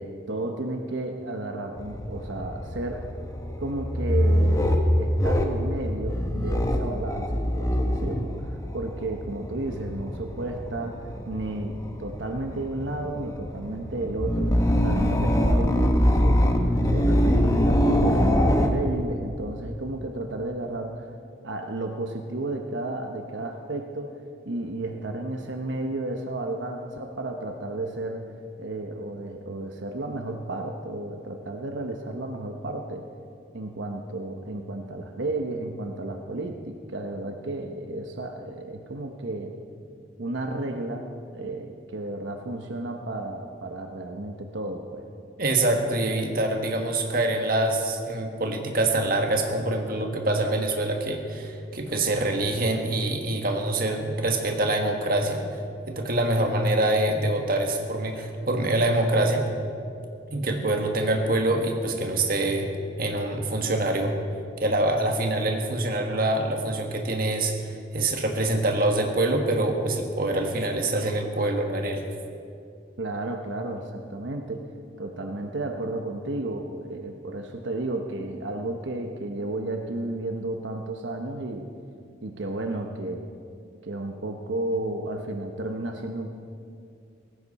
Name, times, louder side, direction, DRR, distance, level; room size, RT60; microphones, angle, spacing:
voice 1, 0.0-3.1 3.6-16.4 16.8-21.1 21.4-24.1 24.5-33.0 33.5-39.6 40.2-41.1 41.3-45.0 73.0-74.7 75.0-81.7 82.2-83.3 83.8-86.3, right 2 dB, 85° right, 4 dB, 1.0 m, -32 dB
sound 1, 1.8-18.7, equal, 15° left, 1.0 m, -24 dB
voice 2, 45.4-55.4 55.9-59.5 60.3-62.7 63.0-64.1 64.6-67.5 67.9-72.0, right 2 dB, 50° right, 3 dB, 1.6 m, -25 dB
17.5 x 15.5 x 4.2 m, 2.4 s
head